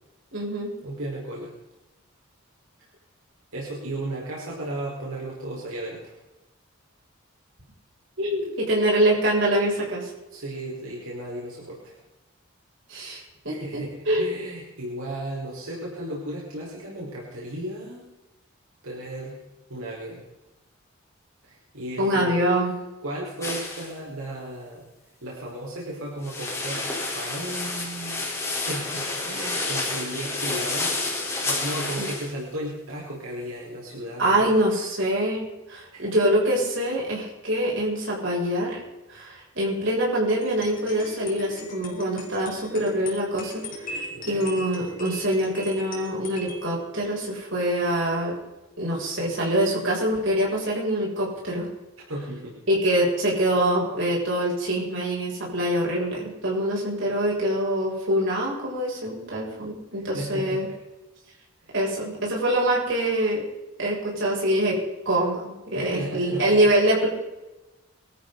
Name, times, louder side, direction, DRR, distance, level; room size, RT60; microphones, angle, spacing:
voice 1, 0.3-0.7 8.2-10.1 12.9-14.3 22.0-22.8 32.0-32.1 34.2-38.8 39.1-48.3 48.8-51.7 52.7-60.7 61.7-63.4 63.8-64.8 65.1-67.1, right 1 dB, 60° right, -4 dB, 7.0 m, -24 dB
voice 2, 0.8-1.5 3.5-6.1 10.3-12.0 13.4-18.0 18.8-19.4 19.7-20.2 21.4-22.3 23.0-24.8 25.2-26.9 27.1-28.2 28.5-30.9 31.4-34.5 35.9-36.1 44.1-44.5 52.1-52.5 59.9-60.6 61.6-61.7 65.7-66.4, right 1 dB, 80° right, -4 dB, 4.8 m, -35 dB
sound 1, 23.4-23.9 26.2-32.3, left 2 dB, 15° left, 4.1 m, -29 dB
sound 2, 40.3-48.6, equal, 40° left, 4.4 m, -40 dB
23.5 x 13.5 x 4.1 m, 1.0 s
head